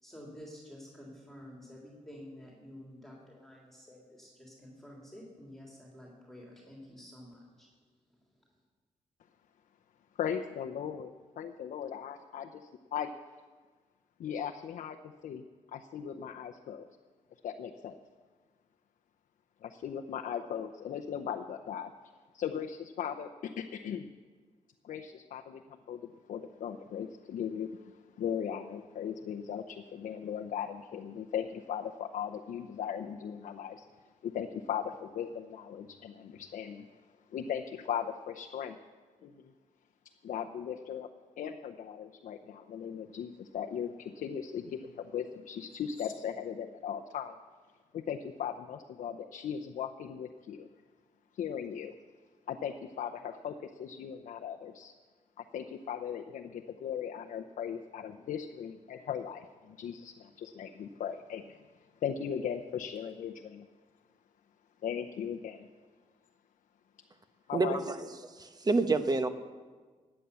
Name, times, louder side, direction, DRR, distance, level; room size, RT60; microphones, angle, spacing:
voice 1, 0.0-7.7, equal, 5° left, -3 dB, 3.4 m, -50 dB
voice 2, 10.2-11.1 11.4-13.1 14.2-15.4 15.7-16.9 17.4-18.0 19.6-21.9 22.3-24.1 24.8-25.6 25.9-33.8 34.2-36.9 37.3-38.8 39.2-39.5 40.2-41.1 41.4-47.3 47.9-50.7 51.3-51.9 52.5-54.9 55.4-61.6 62.0-63.7 64.8-65.7 67.5-68.1, left 8 dB, 80° left, 4 dB, 0.7 m, -38 dB
voice 3, 67.5-68.0 68.4-69.3, right 3 dB, 30° right, 9 dB, 1.0 m, -28 dB
16.5 x 9.8 x 6.9 m, 1.5 s
cardioid pair, 95°, 13 cm